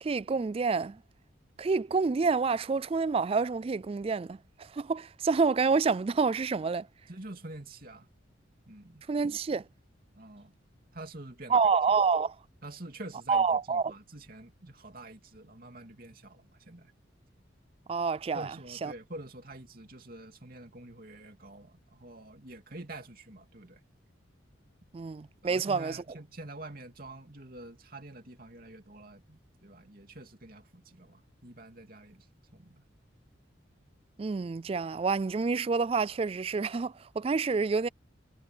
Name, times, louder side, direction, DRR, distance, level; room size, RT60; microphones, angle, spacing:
voice 1, 0.0-1.0 1.6-6.9 9.1-9.6 11.5-12.4 13.3-13.9 17.9-18.5 18.8-18.9 24.9-26.0 34.2-37.9, right 4 dB, 30° right, 0.3 m, -28 dB
voice 2, 7.1-8.1 8.7-9.0 10.1-10.5 10.9-11.6 12.6-16.9 18.3-23.8 25.4-32.3 32.5-32.8, right 2 dB, 50° right, 2.9 m, -47 dB
head